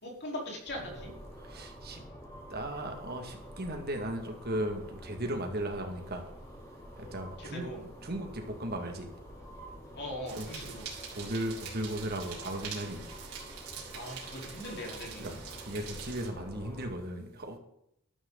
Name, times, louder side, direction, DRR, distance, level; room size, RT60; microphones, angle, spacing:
voice 1, 0.0-1.1 7.4-7.8 9.9-10.9 13.9-15.3, left 1 dB, 50° left, -1 dB, 4.5 m, -40 dB
sound 1, 0.7-16.9, equal, 15° left, 4.4 m, -48 dB
voice 2, 1.4-2.0 2.5-6.2 7.0-7.7 8.0-9.1 10.3-10.5 11.1-13.1 13.9-14.4 15.2-17.6, right 1 dB, 45° right, 4 dB, 2.3 m, -36 dB
sound 2, 10.3-16.3, right 6 dB, 75° right, 5.3 m, -45 dB
13.5 x 12.5 x 4.1 m, 0.75 s
head